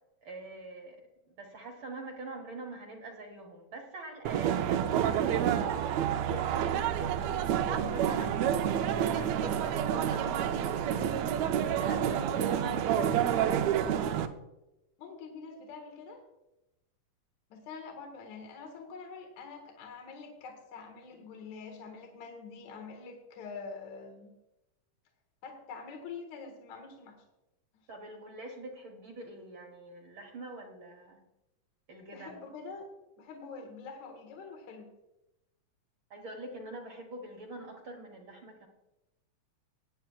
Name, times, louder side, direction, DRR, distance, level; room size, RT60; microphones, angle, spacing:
voice 1, 0.2-1.0 1.4-8.4 8.8-13.6 27.9-31.2 31.9-32.4 36.1-38.7, right 2 dB, 55° right, 2 dB, 1.4 m, -45 dB
sound 1, 4.2-14.3, right 9 dB, 80° right, 1.6 m, -29 dB
voice 2, 15.0-16.2 17.5-24.3 25.4-27.2 32.1-32.9 33.2-34.9, left 5 dB, 65° left, 3 dB, 2.7 m, -45 dB
20.0 x 9.2 x 2.3 m, 0.95 s
omnidirectional pair, 3.8 m